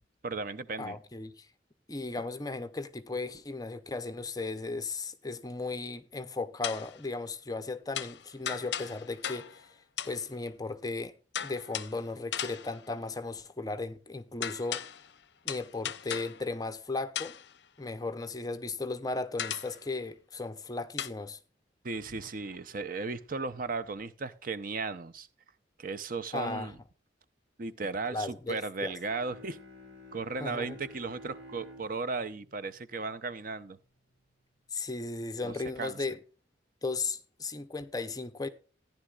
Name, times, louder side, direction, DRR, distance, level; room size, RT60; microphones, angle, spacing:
voice 1, 0.2-1.0 21.8-25.3 25.8-26.7 27.6-29.6 30.1-33.8 35.4-35.5 35.8-36.0, right 4 dB, 45° right, 0.6 m, -36 dB
voice 2, 0.8-1.5 1.9-9.8 10.1-11.1 11.4-14.8 15.4-17.4 17.8-21.4 26.3-26.7 28.1-28.9 30.4-30.8 34.7-36.2 36.8-38.5, left 3 dB, 20° left, 0.6 m, -36 dB
sound 1, 6.6-7.0 7.9-9.7 10.0-10.3 11.3-12.0 12.3-12.9 14.4-15.1 15.5-16.5 17.2-17.6 19.4-19.8 21.0-21.1, left 10 dB, 60° left, 0.6 m, -37 dB
Bowed string instrument, 28.9-33.8, left 1 dB, 90° right, 6.2 m, -51 dB
14.5 x 10.5 x 2.4 m
head